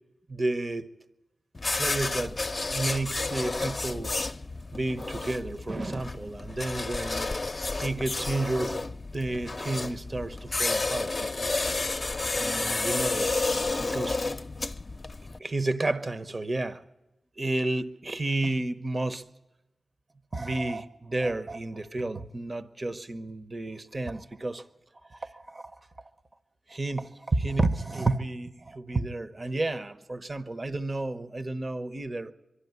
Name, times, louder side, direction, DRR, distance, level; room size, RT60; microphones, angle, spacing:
voice 1, 0.3-0.9 1.8-2.4 2.7-4.2 4.7-7.3 7.7-11.5 12.4-13.3 13.8-14.2 15.4-16.8 17.4-19.3 20.3-24.6 25.1-25.8 26.7-32.3, right 2 dB, 45° right, 1.0 m, -31 dB
sound 1, 1.5-15.4, left 3 dB, 45° left, 0.7 m, -31 dB
23.0 x 13.0 x 9.6 m
cardioid pair, 45°, 0 cm